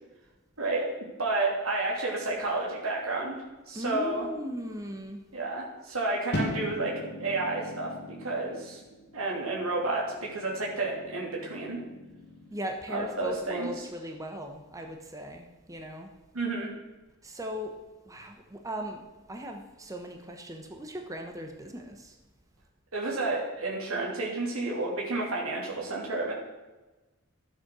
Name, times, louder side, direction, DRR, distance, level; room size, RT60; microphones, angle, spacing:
voice 1, 0.6-0.9 1.2-3.4 3.7-4.3 5.3-8.8 9.1-11.8 12.9-13.7 16.3-16.7 22.9-26.3, right 2 dB, 80° right, -3 dB, 2.9 m, -31 dB
voice 2, 3.7-5.2 12.5-16.1 17.2-17.7 18.0-22.2, right 1 dB, 15° right, 3 dB, 1.0 m, -38 dB
sound 1, 6.3-12.5, left 1 dB, 55° left, 2.4 m, -39 dB
12.0 x 7.4 x 6.2 m, 1.2 s
head